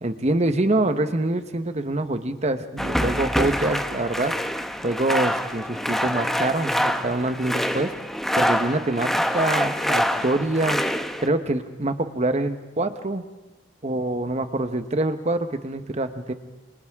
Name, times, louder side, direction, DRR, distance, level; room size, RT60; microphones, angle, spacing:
voice 1, 0.0-4.3 4.8-7.9 8.4-10.8 11.2-13.2 13.8-16.3, right 2 dB, 35° right, 9 dB, 1.2 m, -25 dB
sound 1, 2.8-11.3, equal, ahead, 0.9 m, -25 dB
28.5 x 26.5 x 3.7 m, 1.1 s
head